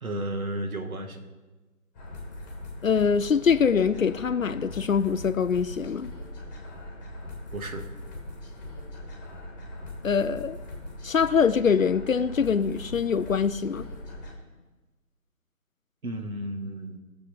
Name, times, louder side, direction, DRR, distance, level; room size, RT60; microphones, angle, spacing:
voice 1, 0.0-1.2 7.5-7.9 16.0-17.0, right 1 dB, 65° right, 1.9 m, -33 dB
sound 1, 1.9-14.3, left 1 dB, 10° left, 1.7 m, -40 dB
voice 2, 2.8-6.1 10.0-10.6 11.0-13.9, left 6 dB, 60° left, 0.6 m, -24 dB
19.0 x 7.2 x 5.1 m
figure-of-eight pair, 155°, 45 cm